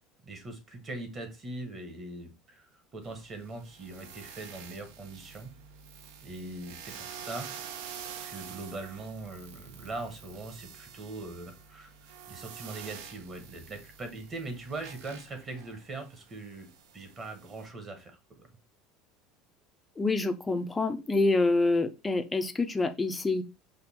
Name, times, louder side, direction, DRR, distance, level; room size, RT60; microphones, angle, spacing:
voice 1, 0.2-5.5 6.2-7.5 8.2-11.9 12.3-18.5, right 2 dB, 25° right, 1.1 m, -41 dB
sound 1, 3.0-17.7, right 8 dB, 80° right, 0.7 m, -47 dB
voice 2, 20.0-23.4, left 3 dB, 10° left, 0.4 m, -27 dB
5.2 x 2.3 x 4.1 m
cardioid pair, 165°, 0 cm